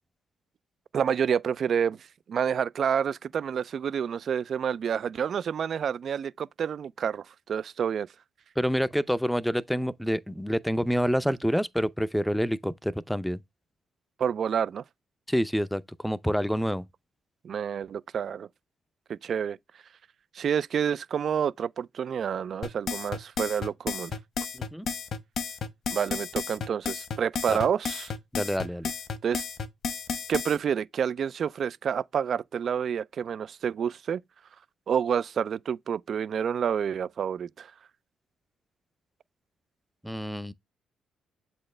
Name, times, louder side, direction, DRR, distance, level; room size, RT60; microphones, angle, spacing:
voice 1, 0.9-2.0 2.3-8.1 14.2-14.8 17.4-18.5 19.1-19.6 20.3-24.1 25.9-28.1 29.2-29.4 30.3-34.2 34.9-37.7, right 7 dB, 55° right, 0.4 m, -28 dB
voice 2, 8.6-13.4 15.3-16.8 24.5-24.9 27.5-27.6 28.3-28.9 40.0-40.5, equal, ahead, 0.5 m, -27 dB
sound 1, 22.6-30.6, left 5 dB, 60° left, 1.1 m, -32 dB
7.7 x 4.2 x 3.2 m
cardioid pair, 90°, 0 cm